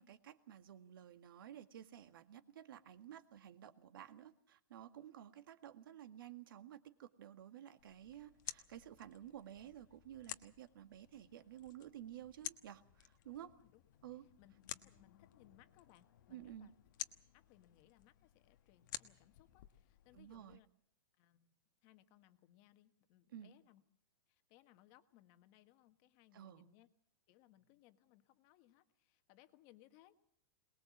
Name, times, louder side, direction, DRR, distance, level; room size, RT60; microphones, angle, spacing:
voice 1, 0.0-13.5 14.0-14.3 16.3-16.7 20.1-20.6 23.3-23.5 26.3-26.7, right 11 dB, 70° right, 9 dB, 1.9 m, -53 dB
sound 1, 7.8-20.6, left 12 dB, 60° left, 1.2 m, -53 dB
voice 2, 13.4-13.8 14.4-16.7 17.3-20.7 21.2-21.6 21.8-23.8 24.3-26.9 27.3-30.3, left 14 dB, 35° left, 9 dB, 1.5 m, -67 dB
22.5 x 20.5 x 7.3 m, 0.66 s
supercardioid pair, 165°, 12 cm